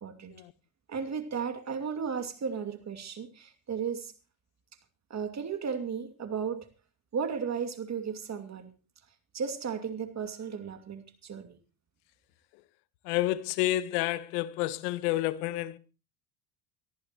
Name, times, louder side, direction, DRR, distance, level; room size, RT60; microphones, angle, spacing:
voice 1, 0.0-0.3 0.9-4.1 5.1-6.7 7.1-8.7 9.3-11.6, right 6 dB, 35° right, 2.6 m, -35 dB
voice 2, 13.0-15.8, left 16 dB, 80° left, 1.3 m, -30 dB
23.5 x 14.0 x 3.0 m
supercardioid pair, 90°, 46 cm